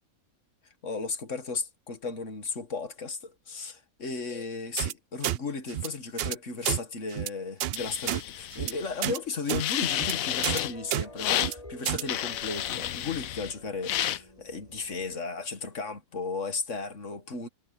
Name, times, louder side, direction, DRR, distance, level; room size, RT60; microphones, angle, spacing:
voice 1, 0.8-17.5, left 4 dB, 60° left, 2.0 m, -35 dB
sound 1, 4.8-4.9 5.2-5.4 5.7-5.9 6.2-6.4 6.6-6.8 7.1-7.3 7.6-7.8 8.0-8.2 8.5-8.7 9.0-9.2 9.5-9.6 9.9-10.1 10.4-10.6 10.9-11.0 11.4-11.5 11.9-12.0, right 12 dB, 65° right, 0.6 m, -30 dB
sound 2, 7.7-9.1 9.6-10.7 11.2-11.5 12.1-13.5 13.8-14.2, left 12 dB, 75° left, 1.1 m, -31 dB
sound 3, 9.8-15.2, left 1 dB, 25° left, 8.2 m, -48 dB
omnidirectional pair, 1.5 m